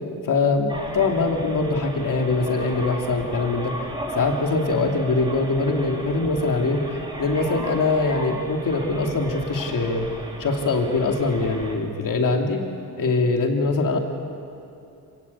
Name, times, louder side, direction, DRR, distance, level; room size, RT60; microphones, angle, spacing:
voice 1, 0.2-3.7 4.1-10.1 10.4-12.6 13.0-14.0, left 3 dB, 60° left, 2 dB, 2.7 m, -23 dB
sound 1, 0.7-11.7, right 1 dB, 15° right, 2.9 m, -35 dB
26.5 x 17.5 x 8.4 m, 2.6 s
wide cardioid pair, 135°, 36 cm